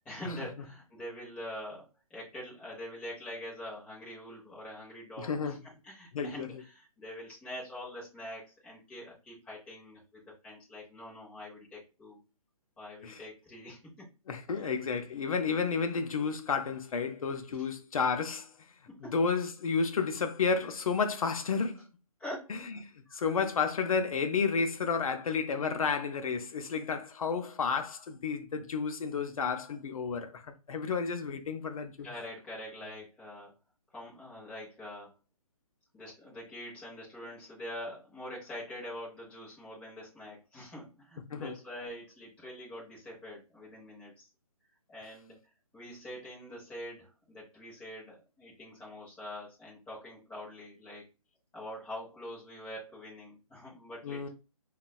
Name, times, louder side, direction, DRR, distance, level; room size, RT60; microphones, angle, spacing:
voice 1, 0.0-1.8 2.1-12.2 12.8-14.1 14.5-14.7 19.0-19.1 22.2-23.3 32.0-33.5 33.9-35.1 35.9-44.3 44.9-45.4 45.7-51.1 51.5-54.3, left 1 dB, 5° left, 0.7 m, -44 dB
voice 2, 5.2-5.6 6.1-6.5 13.0-13.2 14.3-18.5 19.0-21.9 23.1-30.4 30.7-32.1 41.3-41.5 54.0-54.3, left 5 dB, 70° left, 0.5 m, -31 dB
3.8 x 2.2 x 2.2 m
hypercardioid pair, 160°, 19 cm